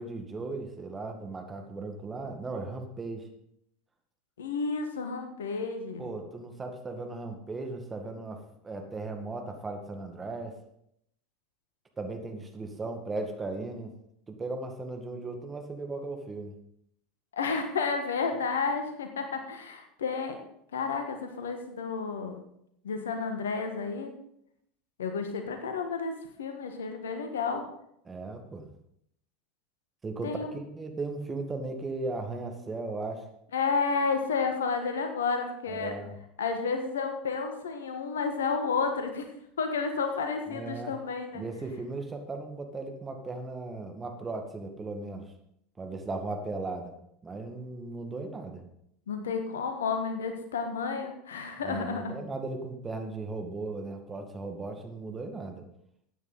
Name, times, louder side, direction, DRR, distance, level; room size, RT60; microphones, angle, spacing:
voice 1, 0.0-3.3 6.0-10.6 12.0-13.9 14.3-16.6 28.1-28.7 30.0-33.3 35.7-36.2 40.5-40.9 41.3-45.3 45.8-46.9 47.2-48.6 51.6-55.6, right 3 dB, 20° right, 4 dB, 2.0 m, -37 dB
voice 2, 4.4-6.1 17.4-20.4 20.7-22.4 22.8-24.1 25.0-26.1 26.4-27.6 30.2-30.5 33.5-35.9 36.4-39.3 39.6-41.4 49.1-52.2, left 5 dB, 75° left, 6 dB, 1.5 m, -31 dB
13.0 x 9.4 x 4.1 m, 0.73 s
figure-of-eight pair, 80°, 0 cm